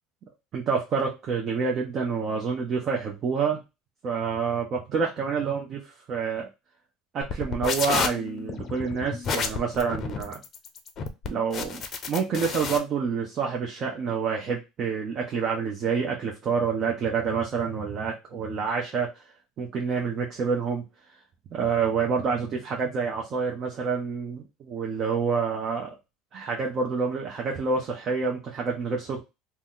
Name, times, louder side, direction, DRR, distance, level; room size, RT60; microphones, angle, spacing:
voice 1, 0.5-3.6 4.0-6.5 7.1-10.4 11.3-11.8 12.1-19.2 19.6-20.8 21.5-25.9 26.3-29.2, right 5 dB, 45° right, 0 dB, 0.8 m, -28 dB
sound 1, 7.2-12.8, left 5 dB, 40° left, 0.6 m, -31 dB
2.9 x 2.1 x 3.8 m, 0.25 s
supercardioid pair, 120°, 0 cm